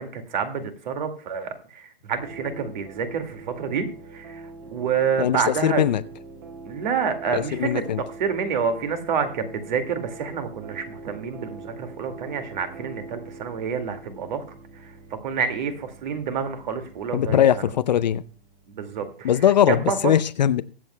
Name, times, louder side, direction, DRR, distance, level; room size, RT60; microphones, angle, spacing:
voice 1, 0.0-3.9 4.1-5.8 6.6-7.8 8.2-14.4 14.8-17.5 18.7-19.3 19.7-20.1, right 6 dB, 50° right, 8 dB, 2.1 m, -28 dB
sound 1, 2.1-18.9, right 3 dB, 30° right, 2.2 m, -43 dB
voice 2, 5.2-6.0 7.3-8.0 17.1-18.2 19.2-20.6, left 10 dB, 45° left, 15 dB, 0.5 m, -20 dB
23.5 x 7.8 x 2.2 m, 0.40 s
hypercardioid pair, 140°, 31 cm